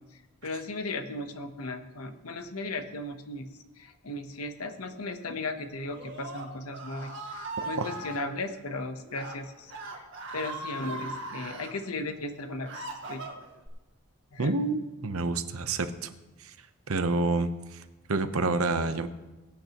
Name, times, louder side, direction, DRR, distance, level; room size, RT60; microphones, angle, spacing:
voice 1, 0.4-3.5 3.8-10.0 10.3-13.3 14.3-14.5, left 2 dB, 90° left, 8 dB, 1.0 m, -36 dB
Screaming, 5.8-8.2 9.0-9.3 9.7-11.7 12.3-13.7, right 2 dB, 55° right, 1.9 m, -39 dB
voice 2, 14.4-16.1 16.9-17.5 18.1-19.1, right 3 dB, 75° right, 9 dB, 0.9 m, -28 dB
22.5 x 8.8 x 3.0 m, 1.1 s
head